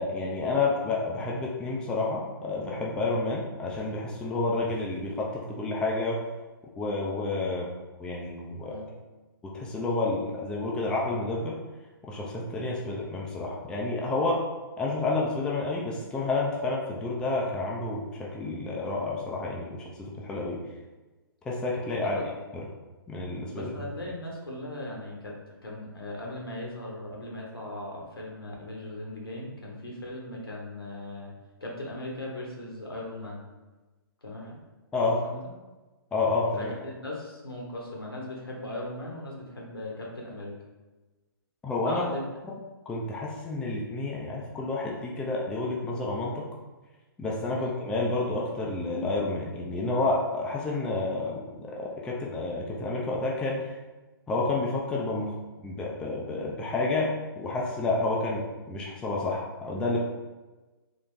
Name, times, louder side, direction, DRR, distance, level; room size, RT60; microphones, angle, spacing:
voice 1, 0.0-6.2 6.8-7.7 8.0-8.8 9.5-11.6 12.0-14.4 14.8-20.6 21.5-22.2 23.1-23.7 34.9-35.2 36.1-36.7 41.6-42.1 42.9-46.5 47.2-53.8 54.3-55.3 55.6-60.0, left 3 dB, 5° left, -3 dB, 0.4 m, -30 dB
voice 2, 23.5-31.3 31.6-33.4 34.2-34.6 35.0-35.4 36.6-40.5 41.8-42.2 47.5-47.7, left 1 dB, 75° left, -2 dB, 1.3 m, -38 dB
3.9 x 2.9 x 3.4 m, 1.2 s
figure-of-eight pair, 120°, 12 cm